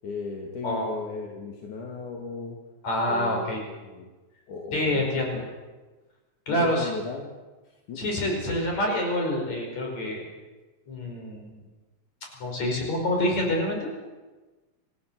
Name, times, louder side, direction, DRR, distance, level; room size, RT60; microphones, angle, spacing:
voice 1, 0.0-2.6 3.1-4.1 4.5-5.4 6.5-7.3 7.9-8.0, left 4 dB, 90° left, 0 dB, 3.7 m, -36 dB
voice 2, 2.8-3.6 4.7-5.4 6.5-6.9 8.0-10.2 10.9-11.6 12.4-13.9, left 1 dB, 65° left, 1 dB, 6.5 m, -27 dB
26.0 x 15.5 x 7.6 m, 1.2 s
omnidirectional pair, 3.4 m